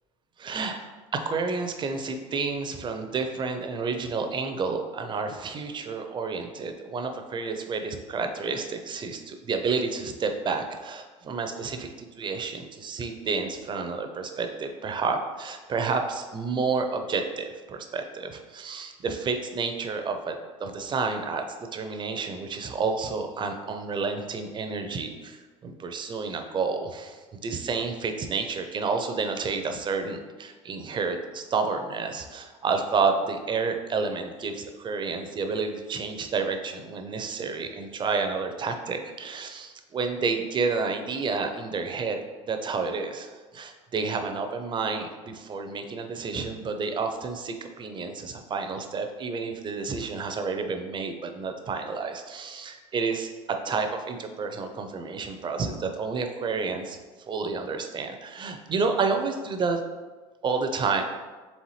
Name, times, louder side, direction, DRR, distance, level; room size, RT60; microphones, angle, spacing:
voice 1, 0.4-0.8 1.1-21.4 21.7-42.2 42.5-53.3 53.6-57.0 57.3-59.8 60.4-61.0, right 4 dB, 30° right, 6 dB, 0.5 m, -30 dB
4.2 x 3.4 x 3.1 m, 1.3 s
supercardioid pair, 90°, 15 cm